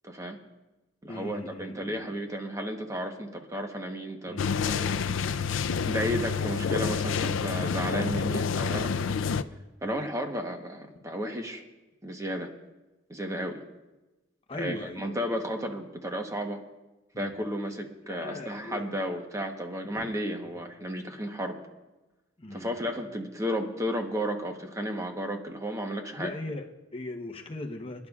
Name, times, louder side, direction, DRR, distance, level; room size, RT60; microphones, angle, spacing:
voice 1, 0.0-0.4 1.0-5.0 5.9-9.2 9.8-11.6 12.0-12.5 13.1-13.6 14.6-16.6 17.2-21.6 22.5-26.3, equal, 15° right, 3 dB, 1.1 m, -33 dB
voice 2, 1.1-2.1 4.3-4.5 9.0-9.4 14.5-15.1 17.1-17.3 18.1-19.0 19.9-20.1 22.4-22.7 26.2-28.1, left 2 dB, 30° left, 3 dB, 0.9 m, -39 dB
sound 1, 4.4-9.4, left 6 dB, 85° left, 0.4 m, -28 dB
27.5 x 11.0 x 2.4 m, 1.1 s
head